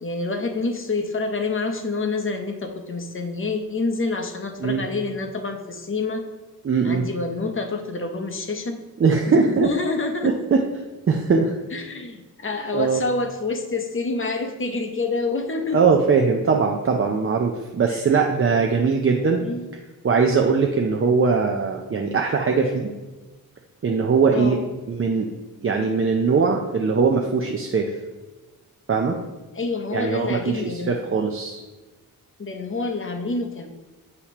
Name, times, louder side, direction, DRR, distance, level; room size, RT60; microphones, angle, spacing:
voice 1, 0.0-6.3 6.8-8.8 9.3-10.4 11.7-15.8 17.9-18.0 19.4-19.7 24.3-24.7 29.5-31.0 32.4-33.7, left 3 dB, 35° left, 5 dB, 0.7 m, -27 dB
voice 2, 6.6-7.0 9.0-9.7 10.5-10.6 11.1-11.5 12.7-13.0 15.7-19.4 20.0-22.9 23.8-24.6 24.9-25.3 25.6-27.9 28.9-29.2 29.9-31.6, right 5 dB, 40° right, 2 dB, 0.4 m, -20 dB
8.2 x 2.9 x 5.8 m, 1.2 s
wide cardioid pair, 170°, 35 cm